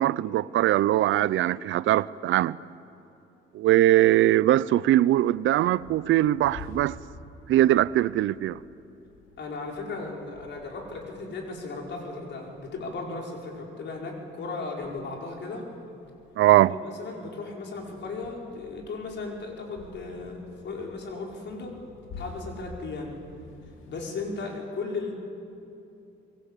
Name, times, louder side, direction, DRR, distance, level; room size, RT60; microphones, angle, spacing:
voice 1, 0.0-2.6 3.5-7.0 7.5-8.6 16.4-16.7, right 14 dB, 80° right, 0.6 m, -21 dB
sound 1, 5.1-14.2 14.5-14.6 14.8-17.2 17.5-24.4, left 3 dB, 85° left, 2.5 m, -49 dB
voice 2, 9.4-15.7 16.5-21.7 22.2-23.1 23.9-25.1, left 3 dB, 65° left, 5.4 m, -36 dB
25.0 x 21.5 x 8.4 m
cardioid pair, 90°, 20 cm